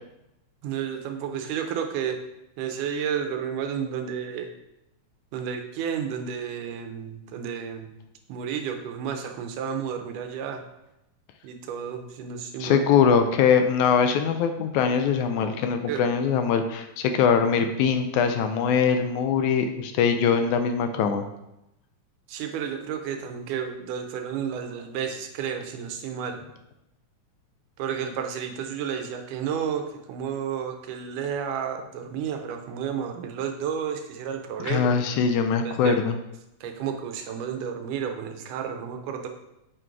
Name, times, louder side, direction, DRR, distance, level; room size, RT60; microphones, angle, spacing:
voice 1, 0.6-2.2 2.6-4.5 5.3-7.9 8.3-10.6 11.4-12.8 15.9-16.0 22.3-26.4 27.8-34.9 35.7-36.0 36.6-39.3, right 7 dB, 85° right, 5 dB, 2.3 m, -31 dB
voice 2, 12.6-21.2 34.6-36.1, left 6 dB, 80° left, 7 dB, 1.9 m, -22 dB
7.6 x 3.9 x 4.6 m, 0.88 s
omnidirectional pair, 3.6 m